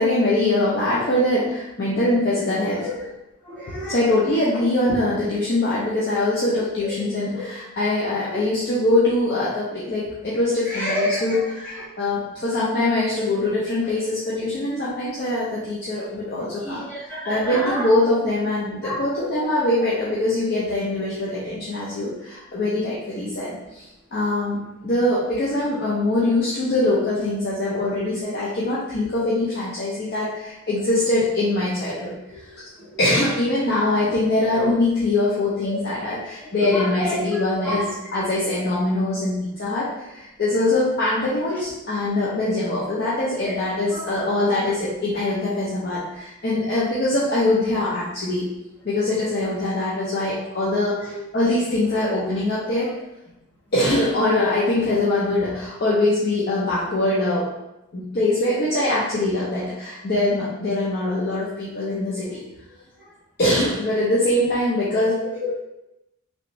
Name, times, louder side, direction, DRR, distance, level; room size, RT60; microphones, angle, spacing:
voice 1, 0.0-2.9 3.7-16.8 17.3-32.5 33.0-48.5 48.8-51.0 51.3-52.9 53.7-57.5 57.9-62.4 63.4-65.2, left 2 dB, 50° left, -8 dB, 0.6 m, -23 dB
voice 2, 3.4-4.0 4.9-5.0 6.8-7.0 7.3-7.4 8.2-8.4 10.6-11.8 16.6-17.9 18.8-19.5 32.8-33.0 35.6-37.9 41.5-41.6 43.4-43.5 43.9-44.0 44.5-44.7 51.0-51.2 51.5-51.6 52.2-52.4 62.1-62.2 63.0-63.1 65.2-65.6, left 1 dB, 10° left, -11 dB, 1.2 m, -30 dB
3.2 x 2.6 x 3.0 m, 0.92 s
head